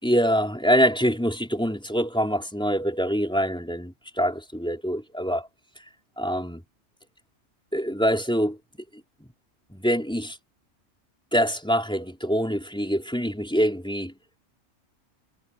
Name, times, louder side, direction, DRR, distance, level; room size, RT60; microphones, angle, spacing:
voice 1, 0.0-5.5 6.2-6.6 7.7-8.6 9.7-10.4 11.3-14.1, equal, 5° left, 3.6 m, -24 dB
omnidirectional pair, 1.4 m